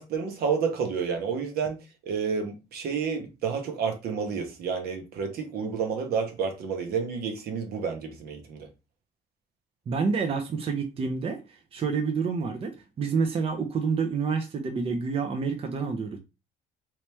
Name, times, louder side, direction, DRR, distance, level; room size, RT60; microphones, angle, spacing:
voice 1, 0.0-1.8 2.1-8.7, right 6 dB, 65° right, 1.0 m, -30 dB
voice 2, 9.9-16.2, right 5 dB, 35° right, 0.6 m, -28 dB
3.1 x 2.9 x 3.3 m
cardioid pair, 110°, 17 cm